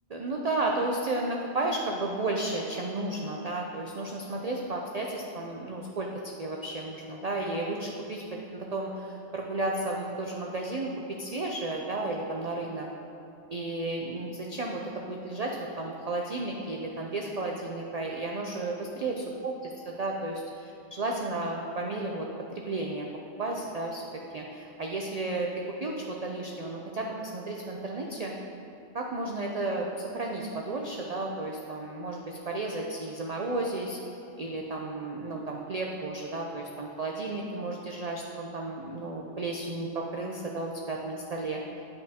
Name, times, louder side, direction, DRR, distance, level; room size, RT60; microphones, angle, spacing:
voice 1, 0.1-6.1 6.4-8.2 8.5-12.9 13.5-22.3 22.5-23.1 23.4-24.0 24.3-25.5 25.8-28.3 28.9-34.0 34.4-41.6, right 2 dB, 85° right, -1 dB, 0.3 m, -33 dB
10.5 x 5.2 x 2.8 m, 2.7 s
omnidirectional pair, 1.3 m